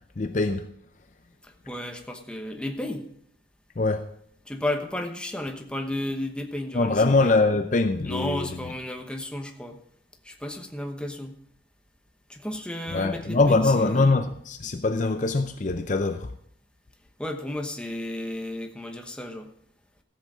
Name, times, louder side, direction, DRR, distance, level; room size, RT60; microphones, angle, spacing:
voice 1, 0.2-0.7 3.8-4.1 6.7-8.6 12.9-16.3, left 3 dB, 40° left, 0.5 m, -23 dB
voice 2, 1.4-3.1 4.5-7.3 8.0-9.8 10.2-11.4 12.3-14.1 17.2-19.5, left 1 dB, 5° left, 1.0 m, -33 dB
14.5 x 7.9 x 4.9 m
head